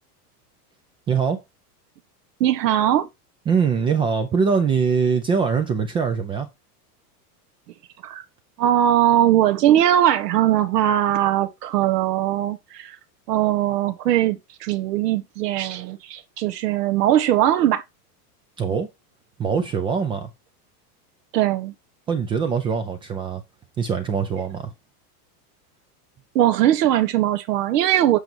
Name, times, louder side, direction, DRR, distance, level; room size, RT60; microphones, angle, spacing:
voice 1, 1.1-1.4 3.5-6.5 18.6-18.9 19.4-20.3 22.1-23.4 23.8-24.7, right 6 dB, 10° right, 0.4 m, -22 dB
voice 2, 2.4-3.1 8.0-8.2 8.6-13.0 13.3-17.8 21.3-21.7 26.3-28.2, right 12 dB, 80° right, 1.5 m, -20 dB
8.1 x 5.2 x 4.4 m
supercardioid pair, 155°, 47 cm